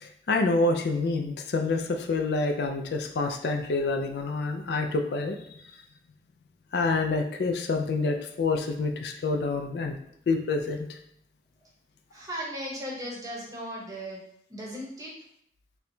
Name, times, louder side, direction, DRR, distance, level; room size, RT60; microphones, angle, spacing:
voice 1, 0.0-5.4 6.7-10.0 10.3-10.9, left 3 dB, 70° left, 4 dB, 0.4 m, -27 dB
voice 2, 12.1-14.2 14.5-15.1, equal, 20° right, -4 dB, 0.8 m, -37 dB
4.3 x 2.2 x 2.6 m, 0.71 s
head